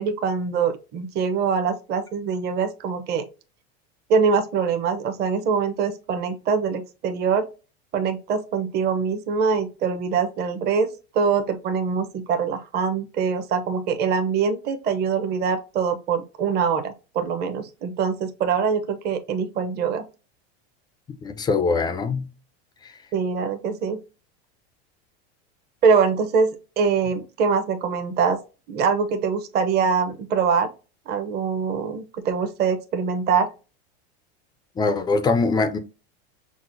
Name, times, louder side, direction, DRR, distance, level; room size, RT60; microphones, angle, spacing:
voice 1, 0.0-3.2 4.1-7.5 7.9-10.9 11.1-20.1 23.1-24.0 25.8-28.4 28.7-30.7 31.1-33.5, right 5 dB, 30° right, 0.6 m, -23 dB
voice 2, 21.2-22.3 34.8-35.8, left 4 dB, 15° left, 0.3 m, -22 dB
6.0 x 2.0 x 2.5 m
supercardioid pair, 125°, 32 cm